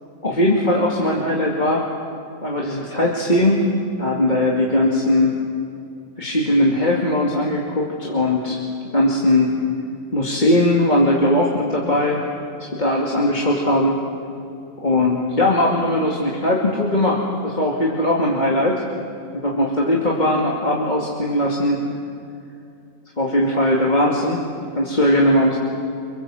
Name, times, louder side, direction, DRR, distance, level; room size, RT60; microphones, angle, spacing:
voice 1, 0.2-1.8 2.4-3.6 4.0-5.3 6.2-8.6 8.9-9.5 10.1-12.3 12.6-14.0 14.8-18.8 19.3-21.8 23.2-24.4 24.8-25.6, left 1 dB, 35° left, -3 dB, 2.6 m, -19 dB
28.5 x 25.0 x 7.8 m, 2.5 s
omnidirectional pair, 1.4 m